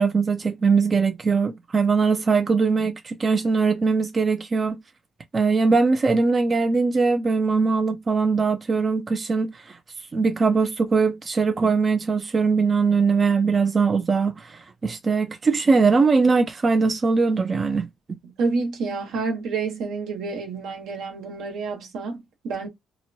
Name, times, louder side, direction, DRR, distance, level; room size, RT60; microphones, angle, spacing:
voice 1, 0.0-4.8 5.3-9.8 10.1-17.9, right 4 dB, 25° right, 0.3 m, -21 dB
voice 2, 18.2-22.7, right 4 dB, 80° right, 1.1 m, -29 dB
2.9 x 2.2 x 2.7 m
cardioid pair, 130°, 0 cm